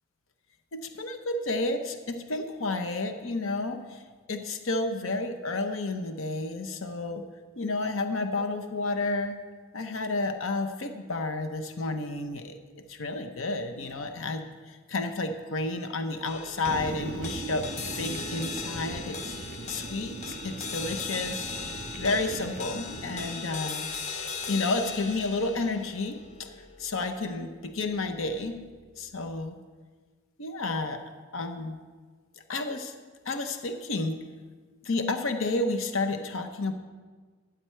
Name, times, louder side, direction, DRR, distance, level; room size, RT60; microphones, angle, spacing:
voice 1, 0.7-4.0 4.3-7.2 7.6-9.4 9.7-12.6 12.9-17.7 17.9-19.4 19.7-21.5 22.0-23.9 24.5-26.5 26.8-28.6 29.0-29.6 30.4-31.0 31.3-31.8 32.5-32.9 33.3-34.2 34.8-36.7, left 2 dB, 75° left, 7 dB, 0.8 m, -31 dB
sound 1, 16.2-28.7, left 4 dB, 35° left, 0.8 m, -39 dB
sound 2, 16.6-23.4, right 3 dB, 35° right, 0.4 m, -40 dB
13.0 x 8.9 x 4.4 m, 1.4 s
head